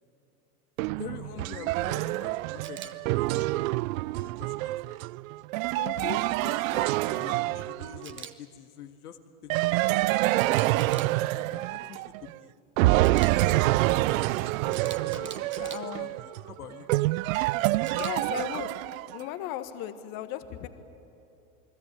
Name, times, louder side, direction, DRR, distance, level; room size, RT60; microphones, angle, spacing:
sound 1, 0.8-8.2 9.5-12.3 12.8-19.2, right 19 dB, 65° right, 0.5 m, -27 dB
voice 1, 1.0-3.7 4.1-5.0 5.9-12.5 13.1-16.2 16.4-16.9, left 9 dB, 90° left, 6 dB, 1.7 m, -46 dB
Camera, 2.6-2.9 8.0-8.3 10.4-11.1 13.0-13.3 14.7-15.8 17.8-18.1, right 8 dB, 25° right, 1.5 m, -42 dB
voice 2, 5.8-6.2 15.6-16.1 17.9-18.7 19.1-20.7, left 12 dB, 50° left, 9 dB, 1.6 m, -36 dB
29.0 x 19.5 x 9.2 m, 2.8 s
hypercardioid pair, 110°, 45 cm